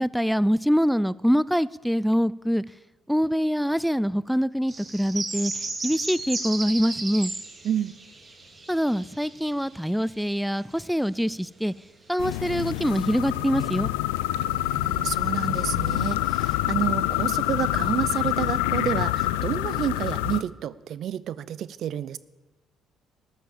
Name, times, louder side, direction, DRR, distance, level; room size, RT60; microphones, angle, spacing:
voice 1, 0.0-2.6 3.1-7.3 8.7-11.7 12.1-13.9, equal, ahead, 20 dB, 0.4 m, -24 dB
sound 1, 4.7-10.4 11.1-11.2 12.1-12.2 12.6-13.2, right 3 dB, 35° right, 2.6 m, -35 dB
sound 2, 12.2-20.4, left 16 dB, 90° left, 0.4 m, -26 dB
voice 2, 14.5-22.2, right 10 dB, 65° right, 18 dB, 0.6 m, -30 dB
13.5 x 10.0 x 7.2 m, 1.2 s
hypercardioid pair, 60°, 0 cm